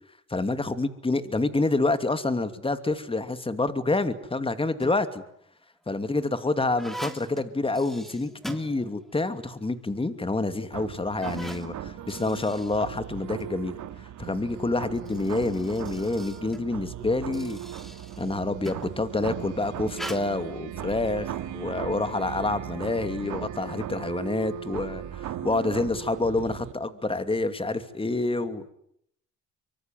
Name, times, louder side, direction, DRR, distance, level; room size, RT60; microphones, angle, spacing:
voice 1, 0.3-5.2 5.9-13.8 14.2-17.6 18.2-28.6, left 2 dB, 20° left, 11 dB, 2.7 m, -28 dB
sound 1, 4.6-5.2 5.9-9.3 9.6-9.7 10.4-10.5 11.0-13.6 14.8-19.0 19.9-20.2, equal, ahead, 3.2 m, -43 dB
sound 2, 10.7-26.7, right 11 dB, 80° right, 2.9 m, -37 dB
24.5 x 24.5 x 9.4 m, 0.73 s
cardioid pair, 90°, 30 cm